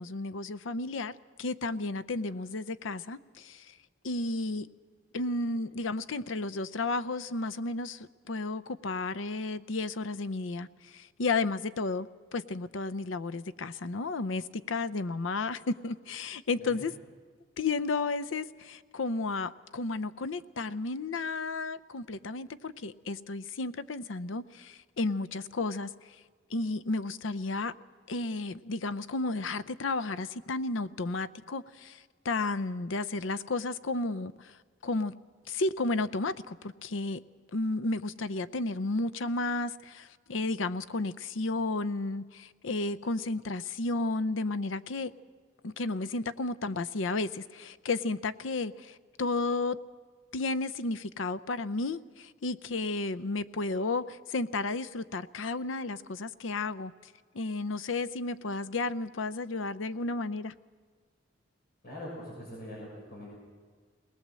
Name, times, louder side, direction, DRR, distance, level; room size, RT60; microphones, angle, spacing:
voice 1, 0.0-3.7 4.0-4.7 5.1-16.9 17.6-25.9 26.5-27.7 28.1-34.5 34.8-35.1 35.5-37.2 37.5-45.1 45.6-49.8 50.3-56.9 57.3-60.5, left 3 dB, 85° left, 0.6 m, -33 dB
voice 2, 61.8-63.3, left 1 dB, 55° left, 6.7 m, -42 dB
20.5 x 19.0 x 7.5 m
head